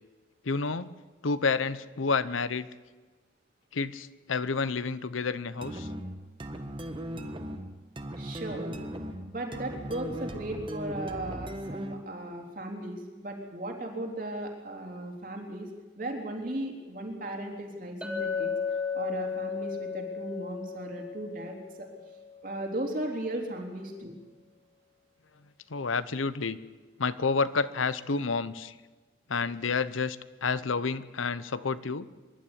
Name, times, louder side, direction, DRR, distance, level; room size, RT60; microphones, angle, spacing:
voice 1, 0.4-0.9 1.2-2.7 3.7-5.9 25.7-26.6 27.0-28.8 29.3-32.1, left 4 dB, 85° left, 15 dB, 0.8 m, -29 dB
sound 1, 5.6-12.1, right 1 dB, 25° right, 1.4 m, -38 dB
voice 2, 8.2-8.7 9.3-15.7 16.0-18.5 18.9-21.9 22.4-24.2, right 1 dB, 45° right, 2 dB, 3.6 m, -36 dB
Chink clink, 18.0-22.4, left 6 dB, 5° right, 2.3 m, -34 dB
24.0 x 12.0 x 10.0 m, 1.3 s
head